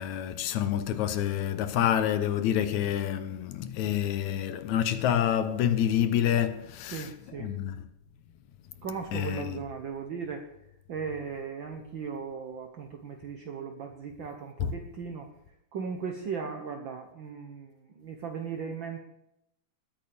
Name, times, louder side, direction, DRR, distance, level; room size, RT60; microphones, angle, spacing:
voice 1, 0.0-7.1 7.4-7.8 9.1-9.6 14.6-14.7, left 10 dB, 75° left, 2.2 m, -28 dB
voice 2, 6.9-7.5 8.8-10.5 10.9-15.3 15.7-19.0, right 6 dB, 65° right, 1.2 m, -37 dB
21.5 x 8.7 x 3.5 m
omnidirectional pair, 3.5 m